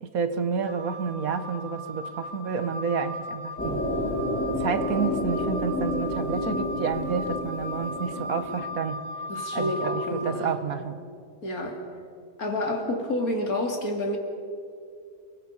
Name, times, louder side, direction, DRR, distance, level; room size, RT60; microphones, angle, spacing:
voice 1, 0.0-3.9 4.6-9.1 9.5-11.0, right 5 dB, 70° right, 1.7 m, -30 dB
Wind instrument woodwind instrument, 0.6-10.3, left 1 dB, 40° right, 5.2 m, -37 dB
sound 1, 3.6-8.6, left 1 dB, 10° left, 4.8 m, -30 dB
voice 2, 9.3-10.6 11.4-11.8 12.4-14.2, left 1 dB, 75° left, 3.2 m, -29 dB
29.0 x 21.5 x 5.6 m
omnidirectional pair, 1.5 m